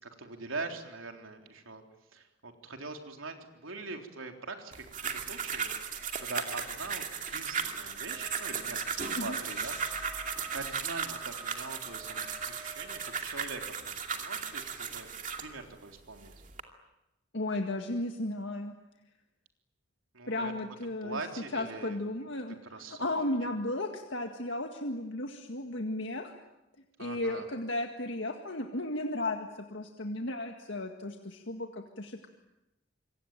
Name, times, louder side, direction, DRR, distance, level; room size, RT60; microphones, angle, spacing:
voice 1, 0.0-1.8 2.1-10.1 10.5-15.1 15.4-16.3 20.1-20.5 21.0-22.0 22.7-23.2 23.4-23.5 27.0-27.5, right 3 dB, 90° right, 4 dB, 3.7 m, -43 dB
sound 1, 4.7-15.5 16.1-16.6, right 6 dB, 40° right, 2.5 m, -36 dB
Wind instrument woodwind instrument, 8.1-13.3, right 3 dB, 10° right, 1.7 m, -51 dB
voice 2, 17.3-18.7 20.3-21.2 21.5-26.3 27.0-32.3, left 1 dB, 65° left, 4 dB, 1.9 m, -34 dB
27.0 x 24.0 x 9.1 m, 0.93 s
head